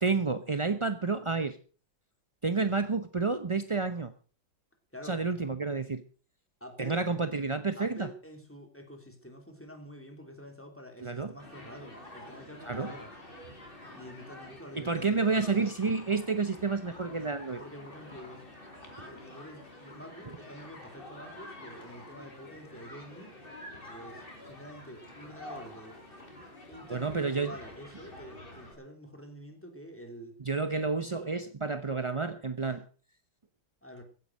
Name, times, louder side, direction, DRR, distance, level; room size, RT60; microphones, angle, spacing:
voice 1, 0.0-1.6 2.4-4.1 5.0-6.0 6.8-8.1 11.0-11.3 12.7-12.9 14.8-17.6 26.9-27.5 30.5-32.8, right 4 dB, 35° right, 10 dB, 0.4 m, -30 dB
voice 2, 4.9-5.2 6.6-7.0 7.8-13.1 13.9-15.6 17.6-18.5 19.0-23.3 23.8-26.0 26.7-30.3 33.8-34.0, equal, 5° left, 4 dB, 3.1 m, -47 dB
Human group actions, 11.4-28.7, left 1 dB, 30° left, 4.0 m, -48 dB
15.5 x 9.9 x 6.3 m, 0.38 s
omnidirectional pair, 2.0 m